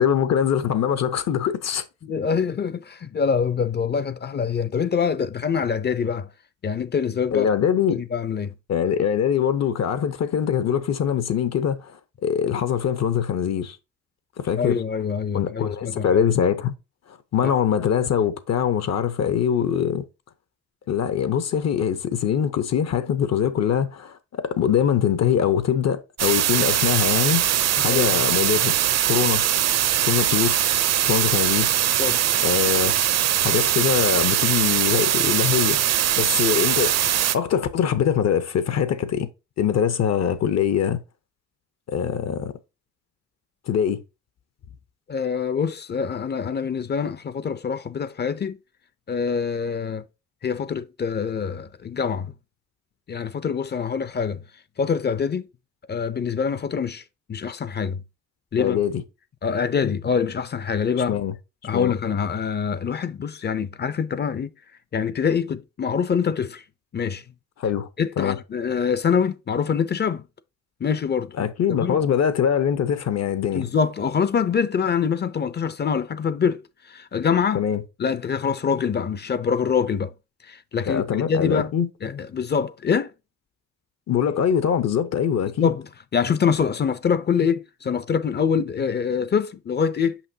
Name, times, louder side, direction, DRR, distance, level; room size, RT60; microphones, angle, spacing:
voice 1, 0.0-1.8 7.3-8.0 8.7-13.8 14.4-14.8 15.3-16.7 17.1-20.0 20.9-27.4 27.7-28.7 29.1-29.4 30.0-30.6 31.0-31.7 32.4-32.9 33.4-35.8 36.2-39.3 39.6-41.0 41.9-42.5 43.7-44.0 58.6-59.0 61.1-61.3 61.7-61.9 67.6-67.9 68.2-68.4 71.4-73.7 77.5-77.8 80.9-81.9 84.1-85.7, left 8 dB, 60° left, 0.9 m, -23 dB
voice 2, 2.0-6.3 6.6-7.5 7.9-8.5 14.6-16.2 17.4-17.5 27.9-28.2 32.0-32.2 45.1-48.6 49.1-50.0 50.4-52.3 53.1-54.4 54.8-55.5 55.9-57.0 57.3-58.0 58.5-58.8 59.4-61.2 61.6-64.5 64.9-66.6 66.9-67.2 68.0-70.2 70.8-71.3 71.8-72.0 73.5-77.6 78.0-80.1 80.4-81.7 82.0-83.1 85.6-85.9 86.1-90.2, left 6 dB, 35° left, 0.6 m, -25 dB
sound 1, 26.2-37.4, right 11 dB, 60° right, 0.7 m, -21 dB
5.8 x 5.8 x 2.8 m
cardioid pair, 90°, 30 cm